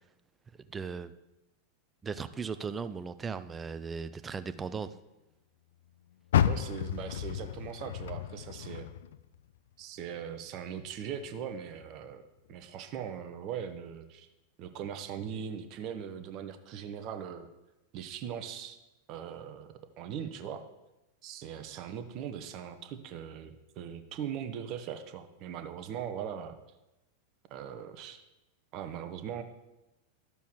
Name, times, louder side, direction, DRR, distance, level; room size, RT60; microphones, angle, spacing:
voice 1, 0.7-1.1 2.0-4.9, right 5 dB, 15° right, 12 dB, 0.4 m, -37 dB
Car, 6.3-9.6 10.0-11.3 11.8-11.9 12.5-12.6, left 10 dB, 60° left, 0.3 m, -32 dB
voice 2, 6.4-8.9 9.8-12.2 12.5-14.3 14.6-17.5 17.9-18.8 19.1-20.6 21.2-26.5 27.5-28.2 28.7-29.4, right 8 dB, 40° right, 8 dB, 0.8 m, -40 dB
12.5 x 6.8 x 3.1 m, 0.99 s
figure-of-eight pair, 90°, 0 cm